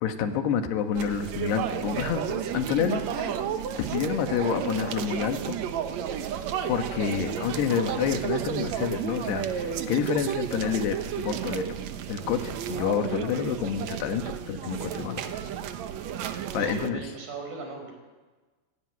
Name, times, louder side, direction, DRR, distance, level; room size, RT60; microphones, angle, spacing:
voice 1, 0.0-3.4 3.8-5.6 6.7-11.7 12.1-15.2 16.5-17.1, left 7 dB, 85° left, 7 dB, 3.5 m, -28 dB
sound 1, 0.9-16.9, right 9 dB, 85° right, 1.5 m, -32 dB
sound 2, 3.1-4.1 4.8-5.5 5.8-5.9 6.3-6.4 6.7-8.6 9.0-9.1, left 5 dB, 50° left, 4.0 m, -48 dB
voice 2, 16.6-18.0, right 3 dB, 60° right, 2 dB, 6.7 m, -38 dB
18.0 x 16.0 x 9.4 m, 1.3 s
omnidirectional pair, 4.7 m